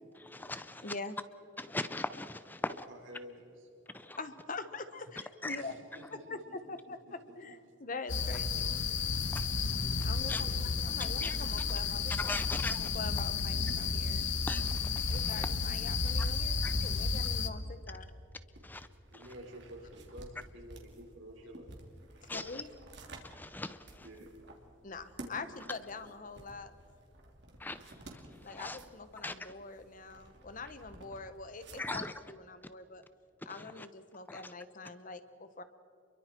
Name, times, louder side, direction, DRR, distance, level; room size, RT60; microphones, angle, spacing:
voice 1, 0.3-0.8 1.6-2.8 3.9-4.2 5.4-5.6 9.3-9.6 10.3-10.4 11.0-11.4 12.2-12.8 14.5-15.2 16.6-16.7 18.6-18.9 22.3-22.6 23.2-24.0 27.6-28.2 28.5-28.8 29.2-29.5 31.8-32.1 33.5-33.9 34.3-34.4, left 2 dB, 10° left, 0.5 m, -39 dB
voice 2, 0.8-1.2 3.9-5.7 6.3-8.8 10.0-10.5 10.8-14.3 15.1-18.2 22.3-22.7 24.8-26.7 28.4-33.0 33.4-35.6, left 3 dB, 40° left, 1.1 m, -44 dB
voice 3, 2.6-3.7 5.6-6.4 6.7-6.8 7.2-7.3 10.3-10.7 19.1-21.7 24.0-24.3, equal, 80° right, 5.0 m, -50 dB
sound 1, 8.1-17.5, left 4 dB, 65° left, 1.1 m, -32 dB
sound 2, 16.8-32.1, right 1 dB, 60° right, 3.0 m, -54 dB
29.5 x 23.0 x 4.5 m
head